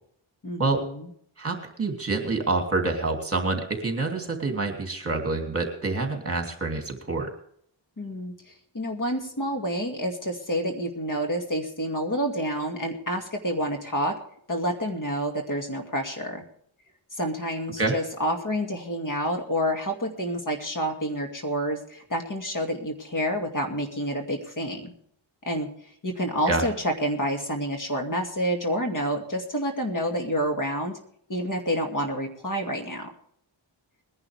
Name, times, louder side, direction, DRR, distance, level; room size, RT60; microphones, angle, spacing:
voice 1, 0.4-1.1 8.0-14.1 14.5-16.4 17.2-24.9 25.5-25.7 26.0-31.0 31.3-33.1, equal, 40° left, 2 dB, 2.5 m, -28 dB
voice 2, 1.4-7.3 17.8-17.9 26.5-26.6, right 3 dB, 30° right, 3 dB, 2.9 m, -27 dB
21.0 x 11.0 x 3.6 m, 0.65 s
wide cardioid pair, 150°, 47 cm